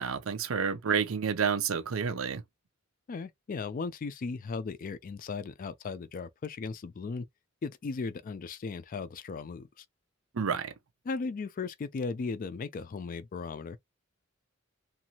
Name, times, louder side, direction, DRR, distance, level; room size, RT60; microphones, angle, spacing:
voice 1, 0.0-2.4 10.3-10.7, right 6 dB, 80° right, 0.6 m, -29 dB
voice 2, 3.1-7.3 7.6-9.8 11.1-13.8, left 4 dB, 40° left, 0.3 m, -36 dB
2.6 x 2.5 x 2.8 m
head